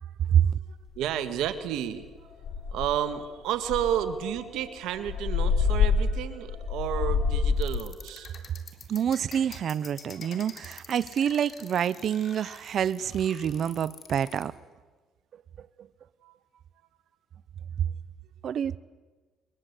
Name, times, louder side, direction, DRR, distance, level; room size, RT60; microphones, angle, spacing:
voice 1, 0.5-2.1 2.7-8.5 16.2-16.3, right 10 dB, 80° right, 1.8 m, -31 dB
sound 1, 1.0-1.1 1.4-1.7 2.0-2.1 2.4-3.1 3.6-7.8, left 5 dB, 65° left, 4.9 m, -27 dB
sound 2, 7.6-14.4, left 6 dB, 50° left, 3.7 m, -46 dB
voice 2, 8.9-14.5 15.6-15.9 18.4-18.8, right 9 dB, 60° right, 0.7 m, -27 dB
22.5 x 22.0 x 8.2 m
cardioid pair, 85°, 0 cm